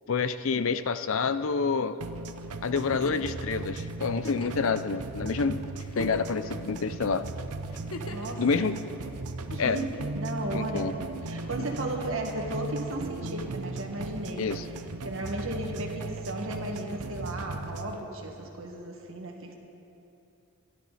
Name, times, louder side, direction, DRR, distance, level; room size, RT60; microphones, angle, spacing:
voice 1, 0.1-2.0 2.6-5.6 6.0-7.2 8.4-8.8 9.6-9.8 10.5-10.9 14.4-14.6, left 5 dB, 60° left, 12 dB, 0.5 m, -28 dB
sound 1, 2.0-18.0, right 2 dB, 85° right, 0.8 m, -37 dB
Giggle, 2.7-3.3 4.2-4.7 5.3-5.4 5.8-6.5 7.7-8.3 9.5-10.2 11.4-11.9 13.4-13.5, left 2 dB, 80° left, 1.1 m, -40 dB
voice 2, 8.1-8.7 9.5-10.9 11.2-14.4 15.0-19.6, right 1 dB, 60° right, 2 dB, 1.9 m, -35 dB
24.5 x 11.5 x 4.2 m, 2.8 s
head